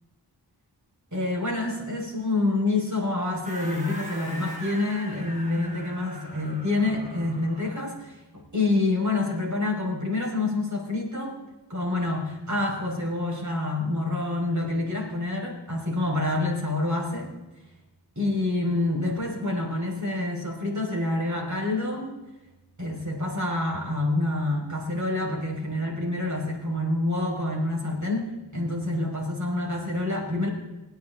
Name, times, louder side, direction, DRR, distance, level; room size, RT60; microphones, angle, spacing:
voice 1, 1.1-11.4 11.7-17.3 18.2-22.1 22.8-30.5, left 2 dB, 45° right, -1 dB, 5.7 m, -27 dB
sound 1, 3.4-7.9, equal, 20° right, 7.0 m, -41 dB
27.5 x 9.7 x 3.9 m, 1.0 s
cardioid pair, 40°, 41 cm